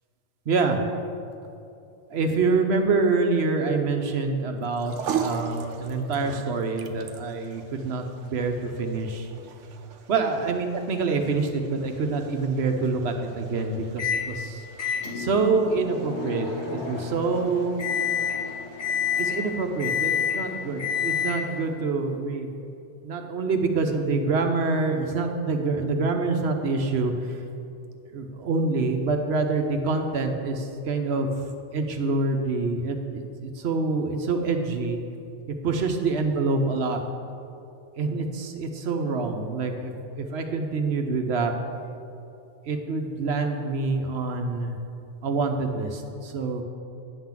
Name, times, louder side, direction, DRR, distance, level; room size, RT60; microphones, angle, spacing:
voice 1, 0.5-0.8 2.1-9.3 10.1-14.6 15.1-17.8 19.2-22.5 23.0-27.4 28.1-31.3 31.7-35.0 35.6-37.0 38.0-41.5 42.7-44.8 45.2-46.6, right 3 dB, 65° right, 5 dB, 1.0 m, -26 dB
sound 1, 4.6-21.1, right 7 dB, 85° right, 0.9 m, -40 dB
Microwave oven, 14.0-14.3 14.8-21.6, left 7 dB, 70° left, 1.5 m, -29 dB
9.9 x 3.9 x 7.3 m, 2.6 s
omnidirectional pair, 1.2 m